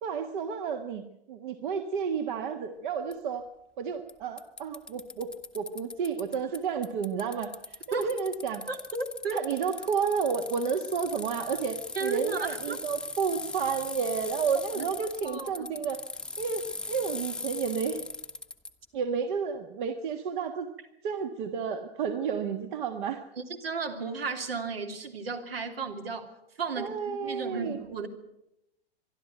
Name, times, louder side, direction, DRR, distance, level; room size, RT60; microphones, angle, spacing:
voice 1, 0.0-3.5 3.8-8.7 9.3-16.0 16.4-18.0 18.9-20.7 21.0-23.2 26.8-27.8, right 6 dB, 55° right, 7 dB, 1.5 m, -31 dB
Bicycle, 3.1-3.2 4.1-4.2 4.4-6.6 6.8-18.7, left 2 dB, 5° left, 0.9 m, -39 dB
voice 2, 8.7-9.4 11.9-12.8 14.7-14.9 15.2-15.5 23.4-26.3 26.6-28.1, right 4 dB, 75° right, 6 dB, 3.0 m, -34 dB
24.5 x 11.5 x 9.1 m, 0.85 s
figure-of-eight pair, 105°, 30 cm